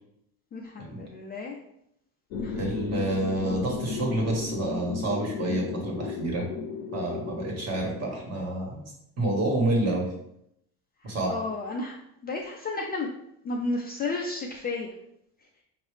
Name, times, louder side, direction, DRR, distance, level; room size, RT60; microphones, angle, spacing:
voice 1, 0.5-1.6 2.4-2.6 11.3-13.1 13.4-14.9, left 3 dB, 25° left, -1 dB, 0.3 m, -32 dB
sound 1, 2.3-8.2, left 4 dB, 80° left, 0.7 m, -35 dB
voice 2, 2.6-6.5 6.9-8.8 9.2-10.1 11.0-11.3, right 1 dB, 35° right, 0 dB, 1.4 m, -28 dB
5.8 x 2.7 x 3.3 m, 0.77 s
cardioid pair, 135°, 42 cm